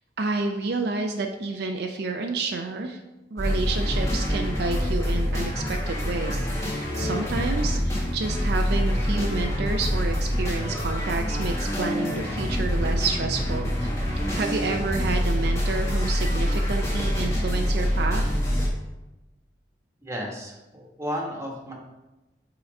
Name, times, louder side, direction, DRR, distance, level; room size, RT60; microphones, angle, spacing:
voice 1, 0.2-3.0 3.3-14.0 14.3-18.4, right 3 dB, 60° right, 4 dB, 0.5 m, -30 dB
sound 1, 3.4-18.7, equal, 15° left, 1.3 m, -26 dB
voice 2, 20.0-21.7, equal, 15° right, -1 dB, 1.2 m, -33 dB
5.8 x 3.9 x 5.2 m, 1.0 s
head